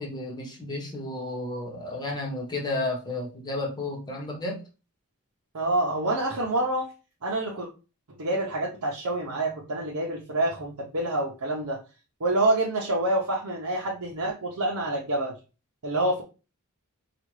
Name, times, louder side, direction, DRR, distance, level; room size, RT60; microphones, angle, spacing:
voice 1, 0.0-4.6, left 2 dB, 20° left, 0 dB, 1.0 m, -32 dB
voice 2, 5.5-6.9 7.2-7.7 8.2-11.8 12.2-15.3 15.8-16.2, right 1 dB, 70° right, -3 dB, 0.8 m, -27 dB
5.0 x 2.4 x 3.1 m, 0.31 s
head